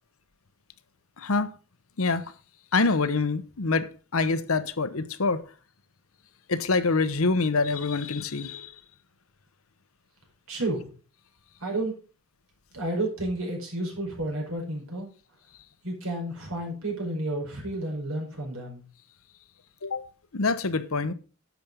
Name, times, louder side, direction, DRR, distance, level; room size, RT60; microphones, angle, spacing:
voice 1, 1.2-1.5 2.0-2.3 2.7-5.4 6.5-8.8 19.8-20.0 20.3-21.1, left 3 dB, 85° left, 0.9 m, -26 dB
voice 2, 10.5-10.9 11.6-12.0 12.7-15.1 15.8-18.8, right 1 dB, 90° right, 4.9 m, -31 dB
10.5 x 7.1 x 5.2 m
head